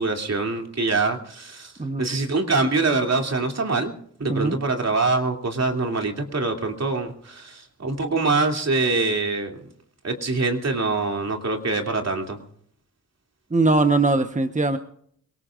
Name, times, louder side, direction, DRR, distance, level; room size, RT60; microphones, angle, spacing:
voice 1, 0.0-1.7 2.0-3.9 4.2-9.5 10.0-12.4, right 3 dB, 55° right, 4 dB, 2.9 m, -24 dB
voice 2, 13.5-14.8, right 3 dB, 25° right, 8 dB, 1.1 m, -21 dB
27.0 x 18.5 x 2.5 m, 0.64 s
cardioid pair, 50°, 32 cm